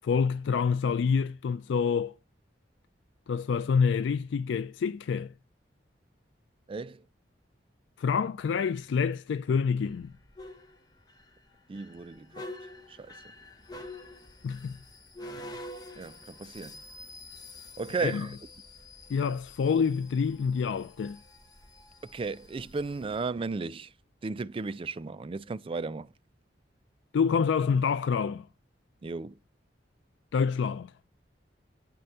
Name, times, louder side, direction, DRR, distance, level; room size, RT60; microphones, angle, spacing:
voice 1, 0.0-2.1 3.3-5.3 8.0-10.1 14.4-14.8 18.0-18.2 19.1-21.2 27.1-28.4 30.3-30.9, left 6 dB, 80° left, 0.3 m, -27 dB
voice 2, 6.7-7.0 11.7-12.5 12.9-13.2 16.0-16.8 17.8-18.4 22.0-23.9 24.2-26.1 29.0-29.4, right 4 dB, 30° right, 0.3 m, -35 dB
sound 1, 9.8-23.3, left 1 dB, 20° left, 1.1 m, -47 dB
7.7 x 4.3 x 6.8 m
head